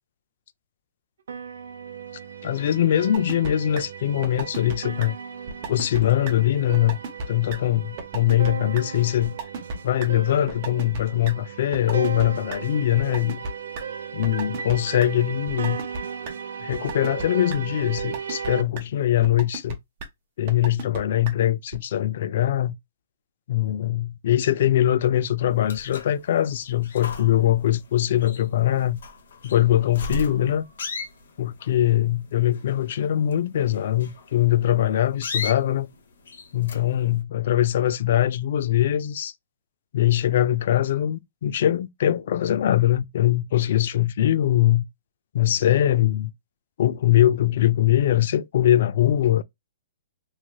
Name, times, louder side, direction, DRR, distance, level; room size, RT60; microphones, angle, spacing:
sound 1, 1.3-18.6, right 7 dB, 75° right, 0.6 m, -36 dB
voice 1, 2.4-5.2 5.7-7.0 7.3-9.3 9.8-13.4 14.1-15.8 16.6-19.7 20.4-22.7 23.5-29.0 29.4-30.7 31.4-35.9 36.5-39.3 39.9-44.8 45.3-46.3 46.8-49.4, left 12 dB, 50° left, 0.3 m, -22 dB
sound 2, 3.1-3.5 3.8-3.9 4.2-4.7 5.0-5.1 5.5-6.0 6.3-6.4 6.7-7.2 7.5-7.6 8.0-8.5 8.7-8.8 9.2-9.8 10.0-10.1 10.5-11.3 11.7-12.6 13.0-13.8 14.2-14.7 15.0-15.1 15.5-16.0 16.3-16.4 16.7-17.2 17.5-17.6 18.0-18.5 18.8-18.9 19.2-19.7 20.0-20.1 20.5-21.0 21.3-21.4 21.7-21.8, right 3 dB, 35° right, 0.7 m, -32 dB
sound 3, 25.5-37.2, left 3 dB, 70° left, 0.9 m, -37 dB
3.1 x 2.8 x 2.2 m
hypercardioid pair, 175°, 0 cm